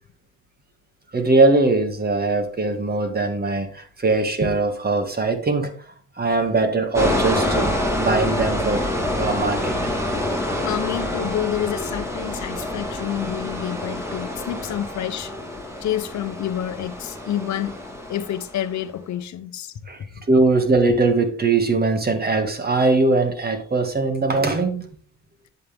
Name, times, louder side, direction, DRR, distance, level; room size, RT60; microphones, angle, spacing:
voice 1, 1.1-5.7 6.2-8.9 9.2-9.9 19.9-20.0 20.3-24.9, right 3 dB, 30° right, 6 dB, 2.1 m, -21 dB
sound 1, 6.9-18.7, left 1 dB, 10° right, 3.0 m, -27 dB
voice 2, 10.6-15.3 15.8-17.8 18.1-19.8 20.1-20.2, left 11 dB, 70° left, 11 dB, 0.9 m, -28 dB
9.8 x 7.8 x 3.6 m, 0.44 s
cardioid pair, 90°, 30 cm